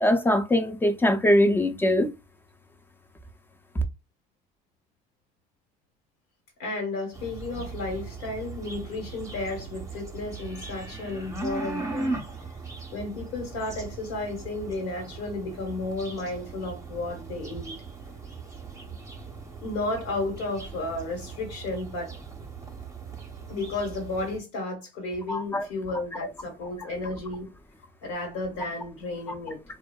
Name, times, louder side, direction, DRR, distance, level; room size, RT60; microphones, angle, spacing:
voice 1, 0.0-2.1 25.3-25.7, left 1 dB, 15° left, 0.4 m, -22 dB
voice 2, 6.6-12.2 12.9-17.7 19.6-22.2 23.5-27.5 28.0-29.6, left 2 dB, 85° left, 1.2 m, -33 dB
sound 1, 7.1-24.4, right 3 dB, 20° right, 0.7 m, -39 dB
2.5 x 2.2 x 2.2 m
supercardioid pair, 95°, 16 cm